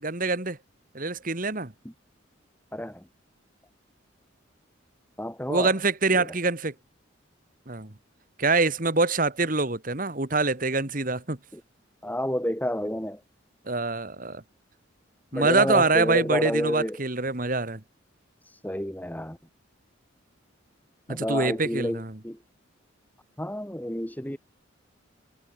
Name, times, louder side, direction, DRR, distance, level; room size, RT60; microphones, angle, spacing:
voice 1, 0.0-0.6 0.9-1.7 5.5-6.7 7.7-7.9 8.4-11.4 13.7-14.4 15.3-17.8 21.1-22.2, right 3 dB, 40° right, 1.9 m, -25 dB
voice 2, 2.7-3.0 5.2-5.7 6.1-6.3 11.5-11.6 12.0-13.2 15.3-17.0 18.5-19.4 21.1-22.4 23.4-24.4, equal, 10° left, 2.2 m, -30 dB
head